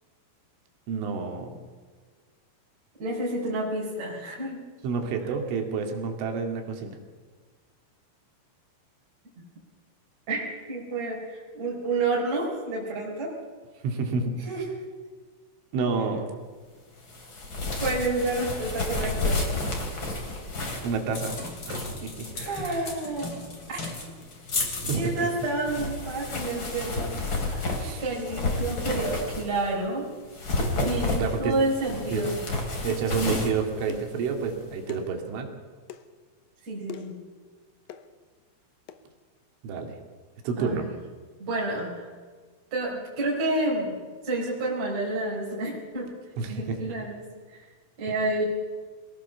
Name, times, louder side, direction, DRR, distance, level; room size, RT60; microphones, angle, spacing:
voice 1, 0.9-1.5 4.8-7.0 13.8-14.4 15.7-16.3 20.8-21.4 21.7-22.3 24.8-25.3 27.7-28.0 31.2-31.6 32.1-32.3 32.8-35.5 39.6-40.0 40.4-40.9 46.4-46.8, right 5 dB, 75° right, 4 dB, 4.9 m, -29 dB
voice 2, 3.0-4.6 10.3-13.3 14.4-14.6 17.8-19.4 22.4-23.3 23.7-23.8 24.9-27.7 28.0-30.1 30.8-32.4 36.6-37.2 40.6-40.9 41.4-42.1 42.7-44.0 44.2-46.1 46.5-47.3 48.0-48.5, right 2 dB, 35° right, -4 dB, 5.0 m, -29 dB
sound 1, 17.1-29.7 30.2-34.6, left 2 dB, 30° left, 3.2 m, -31 dB
sound 2, 31.9-32.1 32.9-33.2 33.9-34.2 34.9-35.1 35.9-36.1 36.9-37.2 37.9-38.1 38.9-39.0, left 10 dB, 85° left, 2.0 m, -42 dB
23.0 x 17.5 x 7.1 m, 1.5 s
omnidirectional pair, 5.7 m